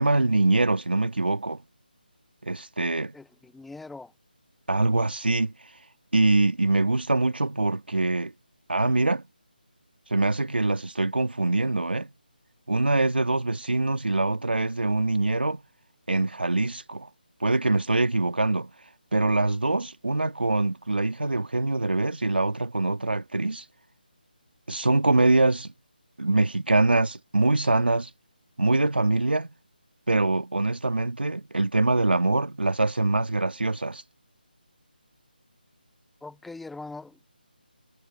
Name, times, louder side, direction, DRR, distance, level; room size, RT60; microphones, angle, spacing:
voice 1, 0.0-1.6 2.4-3.1 4.7-5.5 6.1-8.3 8.7-9.2 10.1-12.1 12.7-15.6 16.1-17.1 17.4-18.7 19.1-23.6 24.7-25.7 26.2-28.1 28.6-29.5 30.1-34.0, right 2 dB, 85° right, 2.1 m, -24 dB
voice 2, 3.1-4.1 36.2-37.3, left 3 dB, ahead, 0.9 m, -42 dB
figure-of-eight pair, 165°, 5 cm